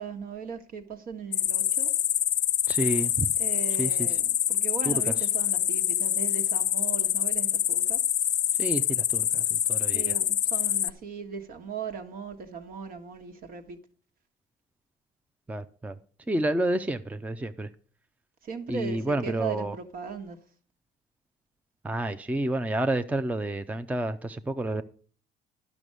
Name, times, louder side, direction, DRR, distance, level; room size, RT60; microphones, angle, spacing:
voice 1, 0.0-1.9 3.4-8.0 9.9-13.8 18.4-20.4, right 5 dB, 60° right, 1.6 m, -38 dB
sound 1, 1.3-10.9, left 11 dB, 45° left, 0.4 m, -26 dB
voice 2, 2.7-3.3 3.8-4.2 4.9-5.3 8.6-10.2 15.5-16.0 16.3-17.7 18.7-19.7 21.8-24.8, right 1 dB, 10° right, 0.6 m, -30 dB
11.0 x 6.2 x 6.6 m
cardioid pair, 110°, 17 cm